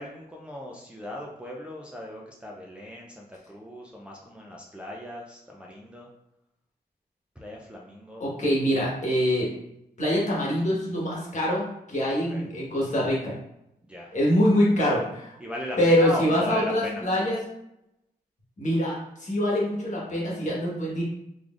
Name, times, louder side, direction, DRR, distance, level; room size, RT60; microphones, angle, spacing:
voice 1, 0.0-6.1 7.4-8.2 12.3-12.4 13.8-14.1 15.4-17.0, left 1 dB, 5° right, -3 dB, 0.5 m, -37 dB
voice 2, 8.2-9.5 10.0-11.6 11.9-13.3 14.1-15.3 15.8-17.4 18.6-21.0, equal, 50° left, -5 dB, 1.3 m, -24 dB
3.8 x 3.2 x 2.4 m, 0.82 s
wide cardioid pair, 105°, 16 cm